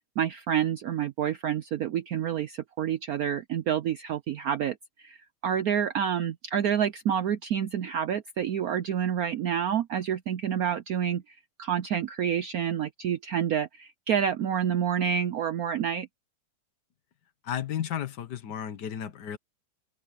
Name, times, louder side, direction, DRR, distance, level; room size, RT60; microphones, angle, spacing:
voice 1, 0.2-4.8 5.0-5.2 5.4-16.1, right 9 dB, 80° right, 0.8 m, -28 dB
voice 2, 17.4-19.4, left 9 dB, 55° left, 1.6 m, -33 dB
open air
omnidirectional pair, 2.3 m